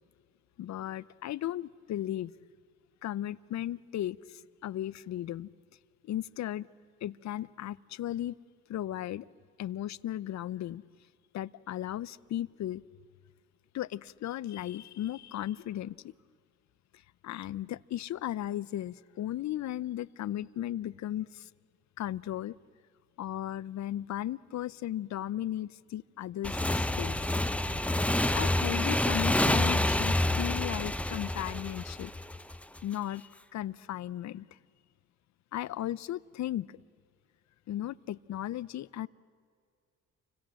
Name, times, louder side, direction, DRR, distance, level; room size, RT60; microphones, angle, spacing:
voice 1, 0.6-2.3 3.0-5.5 6.0-6.7 7.0-8.4 8.7-9.3 9.6-10.8 11.3-12.8 13.7-16.1 17.2-21.5 22.0-22.5 23.2-27.2 28.3-32.1 32.8-34.5 35.5-36.7 37.7-39.1, left 12 dB, 65° left, 19 dB, 0.7 m, -36 dB
Motorcycle / Engine, 26.4-32.8, left 1 dB, 5° left, 0.9 m, -28 dB
29.5 x 25.5 x 7.7 m, 2.2 s
cardioid pair, 90°, 30 cm